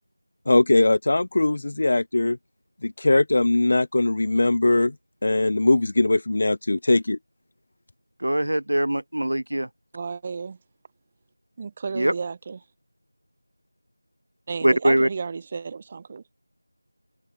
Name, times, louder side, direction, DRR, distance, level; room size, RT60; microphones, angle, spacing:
voice 1, 0.5-2.4 2.8-4.9 5.2-7.2, left 2 dB, 40° left, 2.4 m, -20 dB
voice 2, 8.2-9.7 11.9-12.1 14.6-15.1, right 1 dB, 65° right, 2.6 m, -22 dB
voice 3, 9.9-10.6 11.6-12.6 14.5-16.2, right 5 dB, 20° right, 2.0 m, -32 dB
figure-of-eight pair, 170°, 0 cm